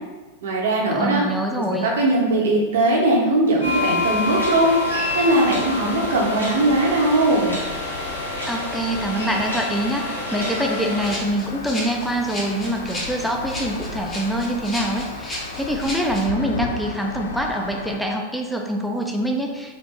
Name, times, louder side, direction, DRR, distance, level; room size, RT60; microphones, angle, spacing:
voice 1, 0.4-1.2 1.8-7.6, right 1 dB, 60° right, -2 dB, 0.8 m, -20 dB
voice 2, 0.9-1.9 8.5-19.7, right 1 dB, ahead, 1 dB, 0.4 m, -25 dB
sound 1, 3.6-11.1, left 2 dB, 85° left, 1.0 m, -27 dB
sound 2, 4.3-18.0, left 4 dB, 65° left, 0.3 m, -35 dB
Rattle (instrument), 11.0-16.3, left 1 dB, 20° left, 0.8 m, -34 dB
4.1 x 2.6 x 2.3 m, 1.3 s
figure-of-eight pair, 90°, 0 cm